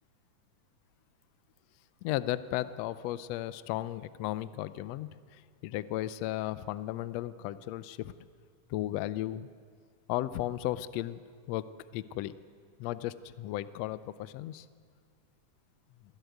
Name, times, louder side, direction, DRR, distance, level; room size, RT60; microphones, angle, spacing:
voice 1, 2.0-8.1 8.7-9.5 10.1-11.2 11.5-11.6 11.9-12.3 12.8-14.7, left 14 dB, 75° left, 15 dB, 1.5 m, -35 dB
26.0 x 11.5 x 9.3 m, 2.1 s
omnidirectional pair, 3.5 m